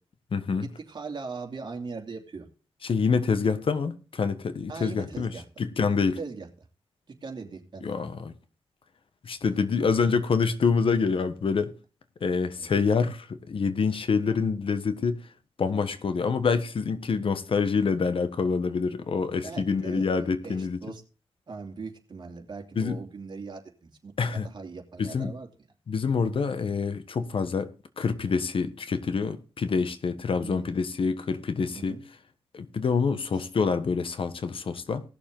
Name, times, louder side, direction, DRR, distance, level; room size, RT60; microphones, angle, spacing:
voice 1, 0.3-0.7 2.8-6.2 7.8-8.3 9.2-11.7 12.2-15.2 15.6-20.8 22.7-23.0 24.2-24.5 25.0-25.3 25.9-32.0 32.5-35.0, left 5 dB, 60° left, 1.4 m, -26 dB
voice 2, 0.9-2.5 4.7-5.4 6.2-6.5 7.2-8.0 12.5-12.7 19.4-21.0 21.5-25.5 30.4-30.8 31.7-32.0 33.3-33.5, right 4 dB, 45° right, 2.8 m, -40 dB
18.5 x 6.8 x 3.8 m
wide cardioid pair, 95°, 10 cm